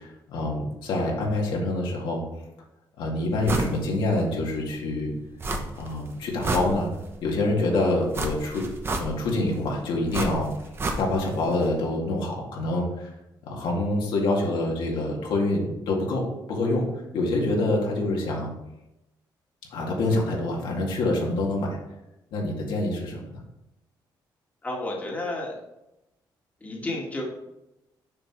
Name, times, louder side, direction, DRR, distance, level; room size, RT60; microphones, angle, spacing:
voice 1, 0.0-2.2 3.0-5.1 5.8-6.9 7.2-8.7 9.0-10.5 11.0-13.1 13.5-16.9 17.1-18.5 19.7-21.8 22.3-23.4, left 2 dB, 80° left, -2 dB, 2.2 m, -26 dB
sound 1, 3.5-3.8 4.2-4.3 5.4-5.9 6.2-7.2 8.1-9.4 10.1-11.4 11.6-11.7, right 2 dB, 30° right, 1.0 m, -29 dB
voice 2, 24.6-25.5 26.6-27.2, left 2 dB, 20° left, -2 dB, 1.7 m, -31 dB
6.8 x 5.9 x 4.6 m, 0.91 s
cardioid pair, 135°, 8 cm